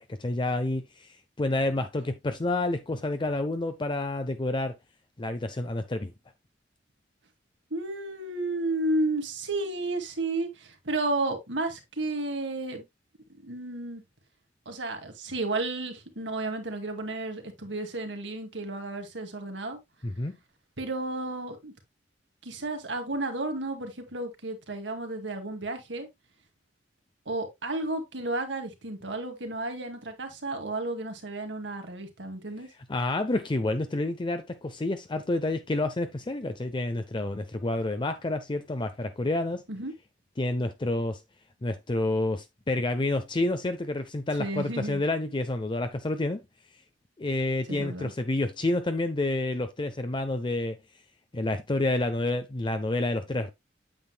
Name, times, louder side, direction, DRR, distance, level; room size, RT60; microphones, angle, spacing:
voice 1, 0.0-4.7 5.2-6.1 20.0-20.3 32.9-39.6 40.4-41.2 41.6-46.4 47.2-50.8 51.3-53.5, left 2 dB, 25° left, 0.6 m, -29 dB
voice 2, 7.7-12.8 13.4-14.0 14.7-19.8 20.8-21.7 22.4-26.1 27.3-32.7 39.7-39.9 44.4-45.0 47.7-48.1, right 2 dB, 75° right, 2.2 m, -32 dB
8.8 x 7.9 x 2.2 m
head